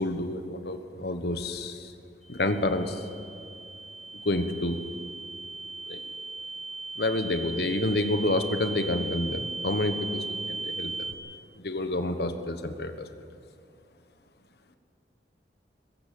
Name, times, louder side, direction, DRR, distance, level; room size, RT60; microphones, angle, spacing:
voice 1, 0.0-1.9 2.3-3.0 4.2-4.8 5.9-6.0 7.0-11.1 11.6-13.1, left 1 dB, 65° left, 8 dB, 1.2 m, -29 dB
sound 1, 2.2-11.1, right 3 dB, ahead, 0.8 m, -37 dB
21.0 x 15.5 x 8.5 m, 2.4 s
head